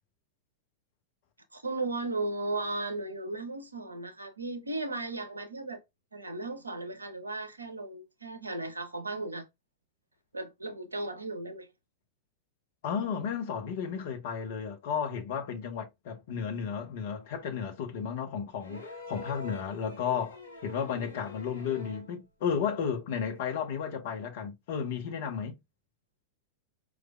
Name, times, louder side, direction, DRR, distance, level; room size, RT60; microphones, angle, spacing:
voice 1, 1.5-5.8 6.1-9.5 10.3-11.7, right 2 dB, 80° right, 0.7 m, -36 dB
voice 2, 12.8-25.6, left 7 dB, 55° left, 0.9 m, -33 dB
Low slide and wail, 18.6-22.1 23.5-23.6, left 2 dB, 75° left, 1.1 m, -46 dB
4.7 x 2.4 x 2.3 m
figure-of-eight pair, 90°, 0 cm